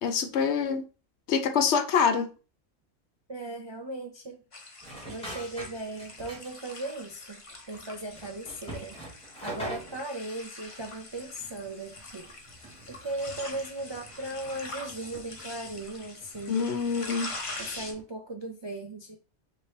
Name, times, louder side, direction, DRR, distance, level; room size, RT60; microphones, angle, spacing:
voice 1, 0.0-0.8 1.3-2.3 16.5-17.3, left 6 dB, 70° left, 0.9 m, -25 dB
voice 2, 3.3-4.4 5.1-9.0 9.4-12.3 12.9-16.7 17.6-19.2, right 2 dB, 45° right, 0.3 m, -37 dB
sound 1, 4.5-17.9, left 2 dB, 30° left, 0.7 m, -44 dB
sound 2, 4.8-6.8 7.0-7.1 7.5-10.1 10.6-18.0, right 1 dB, 5° left, 1.6 m, -45 dB
5.6 x 2.9 x 3.2 m
omnidirectional pair, 1.3 m